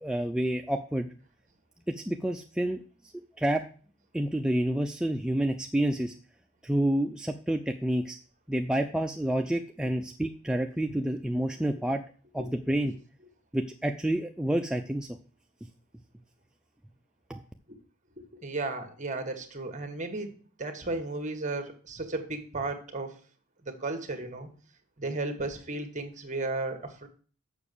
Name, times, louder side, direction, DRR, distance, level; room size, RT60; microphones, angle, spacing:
voice 1, 0.0-1.1 1.9-2.8 3.4-3.6 4.1-6.1 6.6-8.2 8.5-12.0 12.3-12.9 13.5-15.1 17.3-17.4, right 1 dB, 5° right, 3 dB, 0.4 m, -29 dB
voice 2, 18.2-20.3 20.6-23.1 23.6-24.5 25.0-27.1, right 2 dB, 35° right, 7 dB, 1.4 m, -34 dB
7.1 x 5.9 x 6.7 m, 0.41 s
head